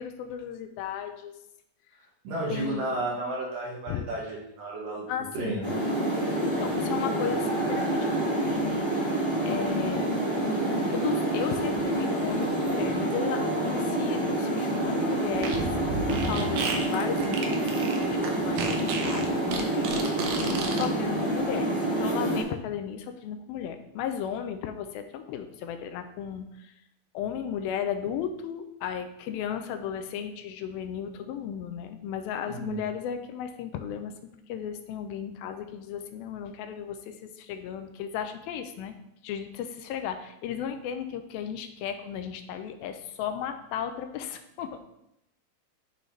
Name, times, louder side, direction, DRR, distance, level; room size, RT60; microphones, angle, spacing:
voice 1, 0.0-1.4 2.5-3.0 3.9-4.1 5.1-5.5 6.5-10.1 10.9-20.0 20.7-26.7 27.1-38.9 39.2-44.8, left 8 dB, 85° left, 7 dB, 2.3 m, -35 dB
voice 2, 2.2-5.1 5.3-5.7 32.5-32.8, right 1 dB, 65° right, -4 dB, 3.0 m, -32 dB
sound 1, 5.6-22.4, right 1 dB, 30° right, 0.5 m, -27 dB
Fart, 15.3-20.9, right 4 dB, 80° right, 1.6 m, -32 dB
9.8 x 3.9 x 3.2 m, 0.81 s
omnidirectional pair, 4.2 m